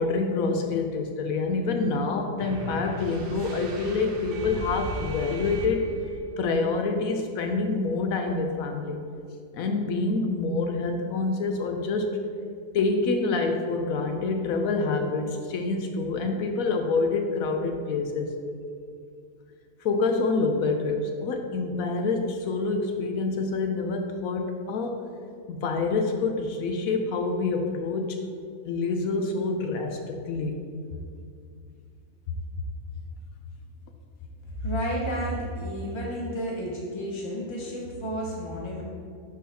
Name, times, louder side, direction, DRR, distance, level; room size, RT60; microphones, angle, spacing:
voice 1, 0.0-5.8 6.4-9.0 9.5-12.2 12.7-18.3 19.8-25.0 25.5-28.2 28.6-30.6, left 3 dB, 70° left, 4 dB, 0.9 m, -27 dB
sound 1, 2.4-6.2, right 1 dB, 65° right, 0.5 m, -36 dB
voice 2, 34.6-38.8, equal, 40° left, -3 dB, 0.4 m, -31 dB
11.0 x 3.9 x 2.8 m, 2.3 s
omnidirectional pair, 1.7 m